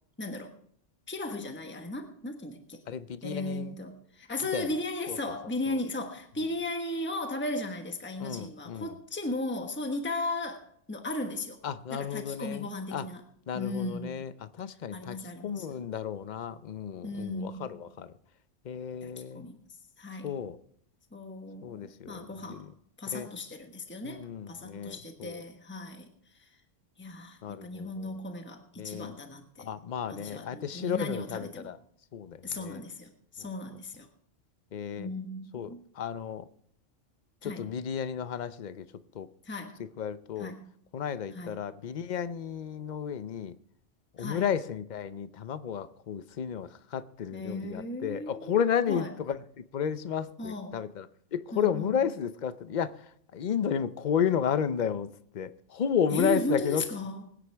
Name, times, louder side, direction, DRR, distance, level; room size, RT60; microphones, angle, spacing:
voice 1, 0.2-0.5 1.1-2.8 3.2-11.6 11.9-13.2 13.5-14.2 14.9-15.8 17.0-17.7 19.0-19.1 19.3-19.6 20.0-20.3 21.1-22.7 23.0-26.1 26.4-26.5 27.0-29.7 30.1-31.7 32.4-34.1 35.0-35.8 37.4-37.6 39.4-39.8 40.4-40.7 41.3-41.6 44.2-44.4 47.3-48.6 48.9-49.1 50.4-50.8 51.5-52.0 56.1-57.2, left 2 dB, 10° left, 1.2 m, -36 dB
voice 2, 2.9-3.8 4.5-4.7 5.1-5.2 5.7-5.8 8.2-9.0 11.6-13.1 13.5-15.2 15.4-18.1 18.6-19.5 20.2-20.6 21.6-22.7 23.1-23.3 24.0-25.4 27.4-28.2 28.8-29.1 29.6-31.8 32.1-32.8 33.4-33.5 34.7-35.1 35.5-36.4 37.4-38.9 39.1-39.3 40.0-40.5 40.9-43.6 44.2-56.8, left 8 dB, 50° left, 0.6 m, -33 dB
22.0 x 9.8 x 3.4 m
omnidirectional pair, 1.3 m